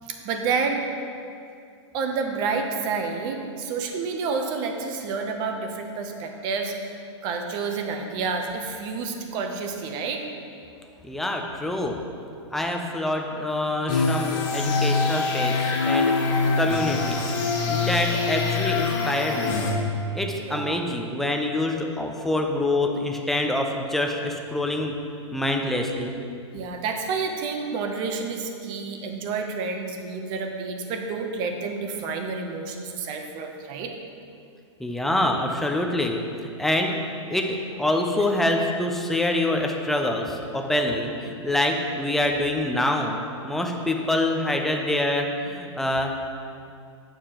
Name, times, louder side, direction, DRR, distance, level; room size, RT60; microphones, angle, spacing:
voice 1, 0.0-0.8 1.9-10.2 20.4-20.8 26.5-33.9, right 4 dB, 30° right, 4 dB, 0.7 m, -29 dB
voice 2, 11.0-12.0 12.5-17.3 17.7-19.6 20.1-24.9 25.3-26.1 34.8-37.0 37.3-43.2 43.4-46.1, left 1 dB, ahead, 2 dB, 0.3 m, -26 dB
sound 1, 13.9-19.7, left 4 dB, 45° left, 1.4 m, -24 dB
9.1 x 6.7 x 2.9 m, 2.4 s
hypercardioid pair, 155°, 15 cm